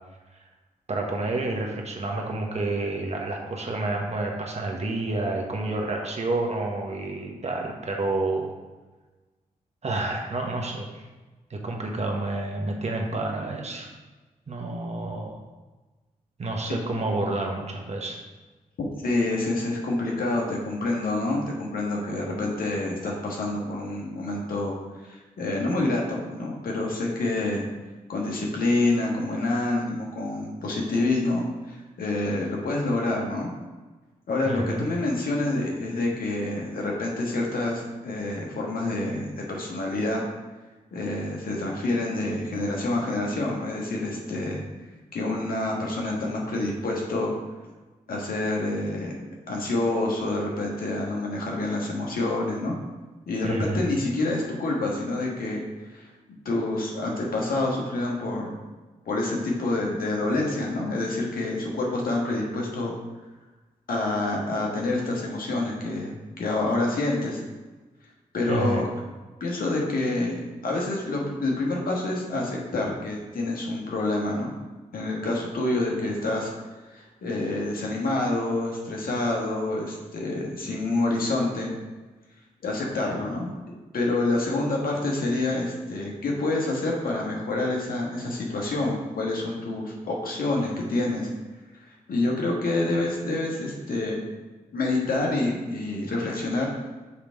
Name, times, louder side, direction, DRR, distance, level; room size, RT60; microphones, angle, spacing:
voice 1, 0.9-8.5 9.8-11.0 11.5-13.9 14.5-15.4 16.4-18.2 34.5-34.8 53.4-53.8 68.5-68.8, right 2 dB, 45° right, 1 dB, 1.3 m, -29 dB
voice 2, 19.0-24.8 25.0-27.6 28.1-33.5 34.3-40.2 40.9-44.6 45.1-47.3 48.1-49.2 49.5-52.7 53.3-56.1 56.4-58.6 59.0-62.9 63.9-67.4 68.3-68.9 69.4-74.5 74.9-76.5 76.9-81.7 82.6-83.5 83.9-91.3 92.1-94.2 94.7-96.7, left 2 dB, 70° left, -2 dB, 1.5 m, -27 dB
7.1 x 3.4 x 4.6 m, 1.2 s
supercardioid pair, 50°, 15 cm